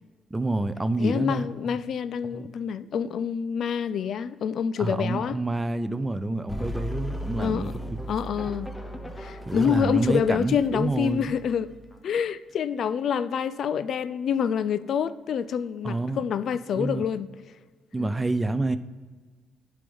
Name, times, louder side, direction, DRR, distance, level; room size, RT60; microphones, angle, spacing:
voice 1, 0.3-1.8 2.2-2.5 4.8-8.0 9.5-11.3 15.8-16.2 16.8-17.1 17.9-18.8, right 2 dB, 20° right, 0.5 m, -28 dB
voice 2, 1.0-5.4 7.4-7.7 8.1-8.7 9.2-11.7 12.0-17.3 18.0-18.1, left 7 dB, 65° left, 0.4 m, -27 dB
sound 1, 6.5-12.0, equal, 10° left, 0.9 m, -37 dB
10.0 x 3.5 x 5.3 m
supercardioid pair, 70°, 0 cm